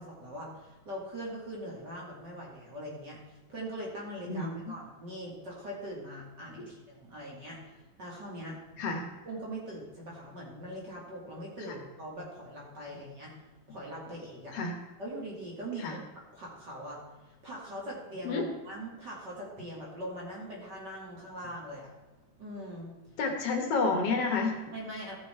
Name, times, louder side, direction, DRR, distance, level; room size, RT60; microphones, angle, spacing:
voice 1, 0.0-3.2 3.5-7.6 8.0-8.6 9.2-13.3 13.7-14.6 15.0-16.0 16.3-17.0 17.3-21.9 22.4-22.9 24.7-25.1, right 1 dB, 35° right, -4 dB, 2.6 m, -41 dB
voice 2, 23.2-24.5, left 4 dB, 60° left, 3 dB, 1.9 m, -30 dB
15.0 x 6.2 x 4.4 m, 1.2 s
omnidirectional pair, 3.7 m